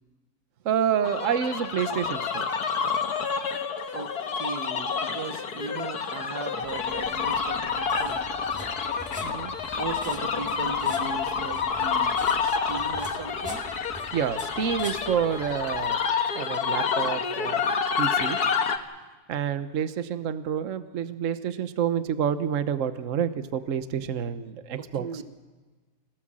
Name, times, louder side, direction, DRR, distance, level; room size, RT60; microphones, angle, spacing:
voice 1, 0.6-2.5 9.2-9.5 14.1-16.0 16.3-17.6 18.0-18.4 19.3-25.1, right 8 dB, 55° right, 11 dB, 1.2 m, -28 dB
sound 1, 1.0-18.8, left 6 dB, 75° left, 1.8 m, -28 dB
voice 2, 3.9-8.2 9.8-13.6 24.8-25.2, right 5 dB, 85° right, 9 dB, 1.8 m, -38 dB
sound 2, 6.6-15.9, equal, 5° right, 2.2 m, -45 dB
25.5 x 17.5 x 7.5 m, 1.3 s
omnidirectional pair, 1.7 m